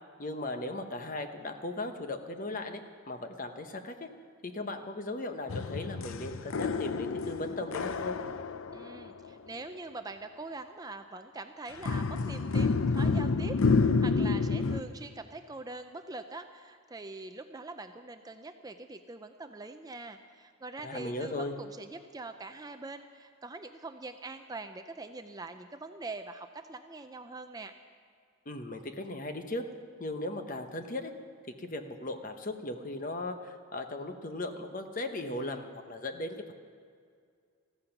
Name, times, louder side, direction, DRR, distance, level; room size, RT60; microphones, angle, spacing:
voice 1, 0.2-2.8 3.1-4.1 4.4-8.2 20.8-21.5 28.5-29.6 30.0-31.1 31.6-36.5, left 2 dB, 40° left, 7 dB, 1.0 m, -37 dB
sound 1, 5.5-9.1 11.8-14.8, left 4 dB, 70° left, 0.5 m, -29 dB
voice 2, 8.7-27.7, right 3 dB, 15° right, 7 dB, 0.4 m, -43 dB
15.0 x 14.0 x 5.9 m, 2.2 s
head